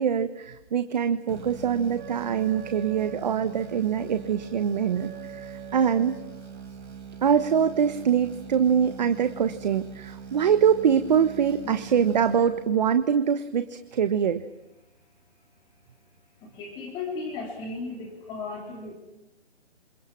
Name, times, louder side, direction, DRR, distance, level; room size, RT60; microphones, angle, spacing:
voice 1, 0.0-6.1 7.2-14.4, right 8 dB, 40° right, 9 dB, 1.4 m, -24 dB
sound 1, 1.3-13.0, right 6 dB, 75° right, 6.9 m, -43 dB
Wind instrument woodwind instrument, 1.9-6.4, right 8 dB, 20° right, 3.8 m, -44 dB
voice 2, 16.4-18.9, left 3 dB, 15° left, 0 dB, 3.4 m, -35 dB
28.5 x 28.0 x 6.0 m, 0.91 s
hypercardioid pair, 160°, 34 cm